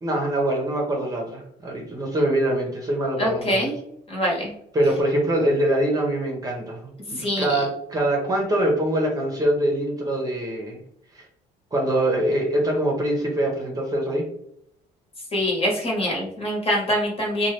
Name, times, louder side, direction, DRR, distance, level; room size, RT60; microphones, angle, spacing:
voice 1, 0.0-3.7 4.7-10.8 11.1-11.2 11.7-14.2, right 1 dB, 20° right, 0 dB, 0.8 m, -24 dB
voice 2, 3.2-3.8 4.1-4.5 7.1-7.6 15.3-17.5, equal, 35° left, -2 dB, 1.3 m, -24 dB
2.8 x 2.3 x 3.2 m, 0.72 s
cardioid pair, 110°, 17 cm